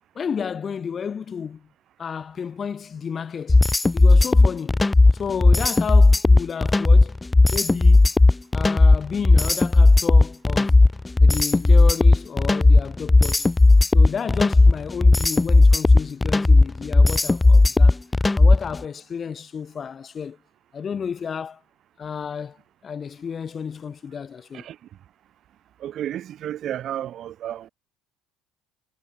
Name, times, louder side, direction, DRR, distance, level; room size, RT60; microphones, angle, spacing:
voice 1, 0.1-1.7 2.0-3.7 3.9-4.8 5.1-7.1 7.5-8.0 8.5-10.8 11.2-13.5 13.9-18.0 18.4-20.4 20.7-21.6 22.0-22.6 22.8-24.7, left 7 dB, 30° left, 6.5 m, -32 dB
sound 1, 3.5-18.7, left 2 dB, 15° left, 0.3 m, -15 dB
voice 2, 25.8-27.7, right 11 dB, 50° right, 5.5 m, -32 dB
cardioid pair, 115°, 0 cm